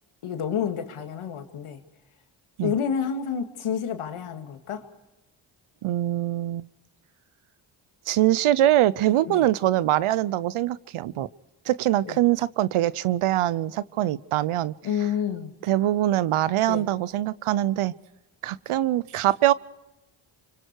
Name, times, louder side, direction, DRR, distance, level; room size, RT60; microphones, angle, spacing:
voice 1, 0.2-1.8 2.6-4.9 9.2-9.5 12.0-12.2 14.8-15.5 16.7-16.9, left 8 dB, 80° left, 6 dB, 2.4 m, -29 dB
voice 2, 5.8-6.7 8.1-11.3 11.7-14.7 15.7-17.9 18.4-19.5, right 13 dB, 75° right, 20 dB, 0.8 m, -23 dB
26.0 x 24.5 x 4.7 m, 1.0 s
supercardioid pair, 50°, 50 cm